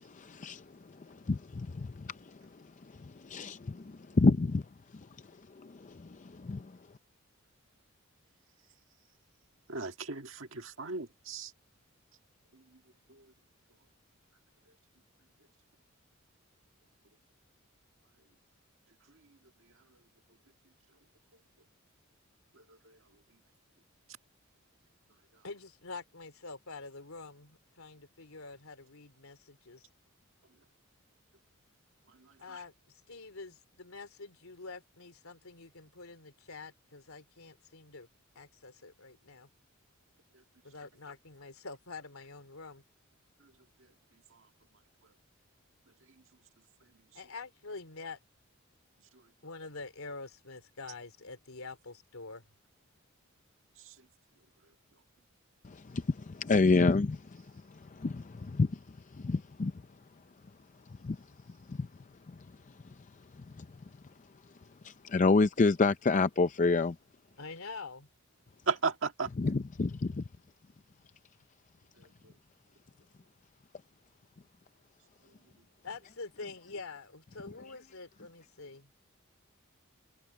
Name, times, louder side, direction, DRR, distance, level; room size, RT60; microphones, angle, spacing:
voice 1, 0.1-0.6 1.1-2.1 3.0-4.6 5.6-6.7 55.6-57.2 57.9-58.8 59.2-59.7 61.0-61.2 61.7-61.9 63.6-63.7 64.8-67.0 69.4-70.2, left 3 dB, 35° left, 0.5 m, -28 dB
voice 2, 9.7-11.5 68.7-69.3, right 4 dB, 65° right, 1.8 m, -34 dB
voice 3, 25.4-29.9 32.4-38.1 38.3-39.5 40.6-42.8 47.1-48.2 49.4-52.4 67.4-68.1 75.8-78.9, left 3 dB, 85° left, 3.2 m, -46 dB
head